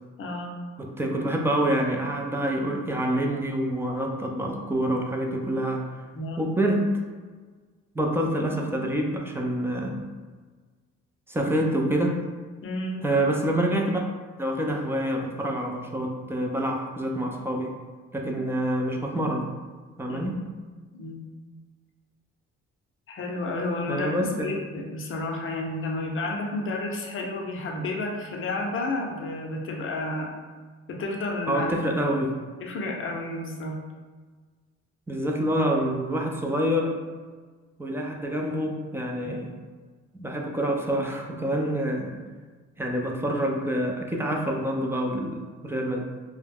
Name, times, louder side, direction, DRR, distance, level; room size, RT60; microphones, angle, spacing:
voice 1, 0.2-0.5 6.1-6.5 12.6-13.0 20.1-20.4 20.9-21.2 23.1-30.3 30.9-31.8 32.6-33.8 39.2-39.3, left 2 dB, 45° left, 0 dB, 0.6 m, -31 dB
voice 2, 0.8-5.8 6.4-6.9 7.9-10.0 11.3-12.2 13.0-14.0 14.4-17.7 18.1-19.5 20.0-20.4 23.9-24.5 31.5-32.4 35.1-37.0 37.8-39.6 40.2-42.2 42.8-46.0, right 1 dB, 10° right, 1 dB, 0.3 m, -27 dB
2.3 x 2.1 x 3.3 m, 1.4 s
cardioid pair, 90°, 30 cm